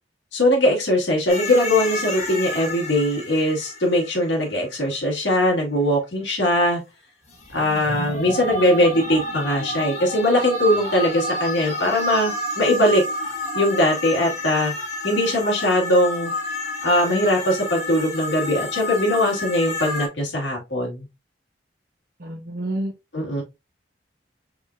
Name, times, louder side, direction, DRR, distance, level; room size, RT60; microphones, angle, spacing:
voice 1, 0.3-6.8 7.5-13.0 13.5-14.7 15.0-16.3 16.8-21.1 23.1-23.4, left 1 dB, 70° left, 2.0 m, -21 dB
sound 1, 1.3-5.0 7.3-20.1, left 1 dB, 40° left, 1.3 m, -30 dB
voice 2, 22.2-22.9, right 1 dB, 50° right, 0.9 m, -28 dB
4.8 x 3.8 x 2.5 m
head